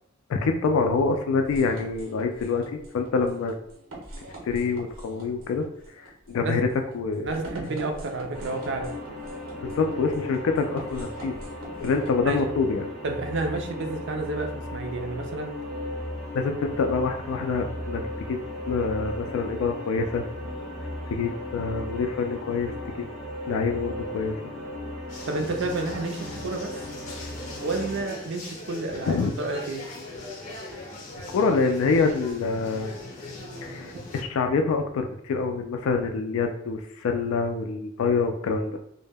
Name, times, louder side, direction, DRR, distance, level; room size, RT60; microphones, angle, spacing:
voice 1, 0.3-3.5 4.4-5.7 6.0-6.7 6.9-7.3 9.6-11.3 11.8-12.9 16.3-18.0 18.3-18.4 18.7-20.3 21.1-23.1 23.4-24.4 29.1-29.3 31.3-32.9 33.6-38.8, left 4 dB, 75° left, 6 dB, 0.3 m, -26 dB
sound 1, 1.4-12.4, right 1 dB, 85° right, 0.8 m, -44 dB
voice 2, 7.2-8.9 12.2-12.4 13.0-15.5 25.3-26.8 27.6-29.9 33.9-34.0, right 3 dB, 60° right, 4 dB, 0.4 m, -30 dB
sound 2, 8.3-28.0, left 1 dB, ahead, 0.5 m, -36 dB
sound 3, 25.1-34.2, left 2 dB, 35° left, 0.6 m, -40 dB
2.1 x 2.0 x 3.3 m, 0.71 s
head